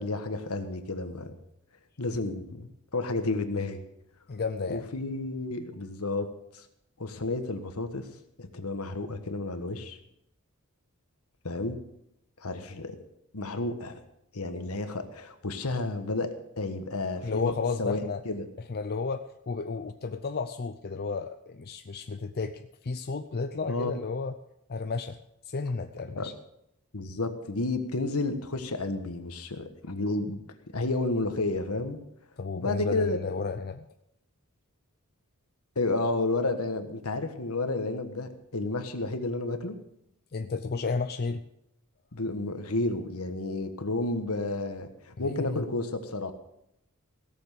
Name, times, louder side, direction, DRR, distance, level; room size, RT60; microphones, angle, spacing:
voice 1, 0.0-1.3 2.0-3.8 4.7-6.3 6.5-6.6 7.0-8.1 8.4-10.0 11.4-11.8 12.4-13.0 13.3-14.0 14.3-18.5 23.7-24.0 26.2-26.3 26.9-30.4 30.7-32.0 32.6-33.2 35.7-39.8 42.1-46.3, left 2 dB, 75° left, 7 dB, 1.4 m, -31 dB
voice 2, 4.3-4.9 17.2-18.2 18.7-24.4 24.7-25.2 25.5-26.3 32.4-33.9 40.3-41.4 45.2-45.6, left 4 dB, 45° left, 7 dB, 0.6 m, -32 dB
17.0 x 7.2 x 6.8 m, 0.80 s
head